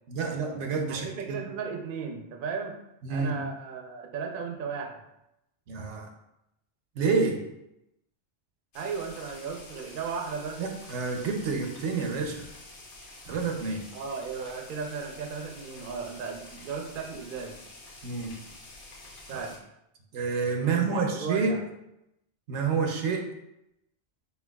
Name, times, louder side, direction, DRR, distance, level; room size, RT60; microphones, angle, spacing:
voice 1, 0.1-1.4 3.0-3.4 5.7-6.1 7.0-7.4 10.6-12.5 13.2-13.8 18.0-18.4 19.3-19.5 20.1-21.6 22.5-23.3, right 4 dB, 80° right, 3 dB, 1.0 m, -28 dB
voice 2, 0.9-2.8 3.1-5.0 8.7-10.6 13.9-17.6 19.3-19.5 20.6-21.6, right 5 dB, 55° right, 3 dB, 0.7 m, -35 dB
sound 1, 8.7-19.6, left 2 dB, 55° left, 1.0 m, -48 dB
4.5 x 4.0 x 2.3 m, 0.84 s
omnidirectional pair, 1.2 m